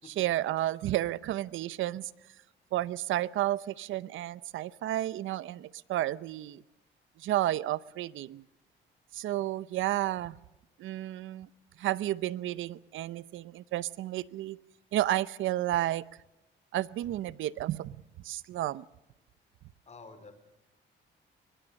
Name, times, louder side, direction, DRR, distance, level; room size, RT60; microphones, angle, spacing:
voice 1, 0.2-2.1 2.7-6.6 7.2-8.4 9.1-10.4 10.8-11.5 11.8-14.6 14.9-16.0 16.7-18.0 18.2-18.8, right 14 dB, 80° right, 0.7 m, -31 dB
voice 2, 19.8-20.3, left 3 dB, 35° left, 4.8 m, -49 dB
23.0 x 20.5 x 6.4 m
cardioid pair, 90°, 20 cm